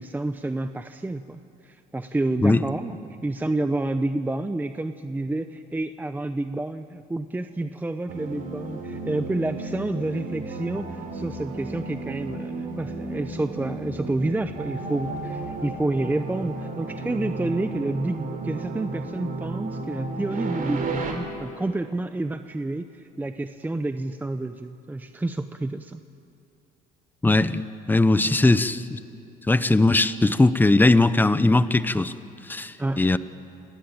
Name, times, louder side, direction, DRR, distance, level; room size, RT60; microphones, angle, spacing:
voice 1, 0.0-26.0 28.2-28.3 32.8-33.1, right 2 dB, 10° right, 9 dB, 0.7 m, -29 dB
sound 1, 8.1-21.1, right 3 dB, 55° right, 4.3 m, -33 dB
voice 2, 27.2-29.0 29.5-32.1 32.5-33.2, left 2 dB, 10° left, 14 dB, 0.8 m, -19 dB
28.0 x 19.5 x 8.9 m, 2.7 s
cardioid pair, 110°, 17 cm